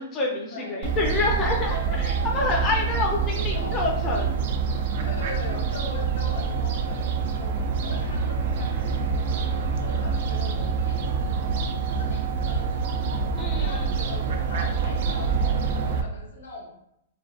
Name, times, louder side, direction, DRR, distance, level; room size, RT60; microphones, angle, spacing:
voice 1, 0.0-4.4 13.4-13.9, left 3 dB, 25° left, -2 dB, 0.5 m, -27 dB
voice 2, 0.5-0.9 2.5-3.1 3.5-3.8 4.9-11.5 11.9-13.1 13.5-16.7, left 2 dB, 85° left, -2 dB, 0.8 m, -41 dB
Fowl, 0.8-16.0, right 5 dB, 60° right, 0.3 m, -26 dB
2.5 x 2.2 x 2.4 m, 0.78 s
hypercardioid pair, 135°, 0 cm